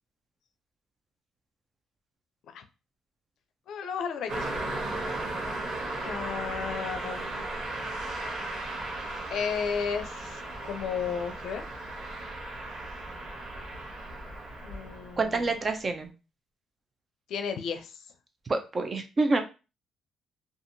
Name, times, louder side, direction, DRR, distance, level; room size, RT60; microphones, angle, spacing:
voice 1, 3.7-4.5 5.0-5.4 6.0-7.4 9.3-11.6 14.6-15.4 17.3-18.0, left 6 dB, 75° left, 8 dB, 0.4 m, -34 dB
Car passing by, 4.3-15.7, right 2 dB, 80° right, 1.0 m, -36 dB
voice 2, 15.2-16.1 18.5-19.4, right 3 dB, 35° right, 6 dB, 0.6 m, -27 dB
2.7 x 2.4 x 2.6 m, 0.30 s
supercardioid pair, 75°, 0 cm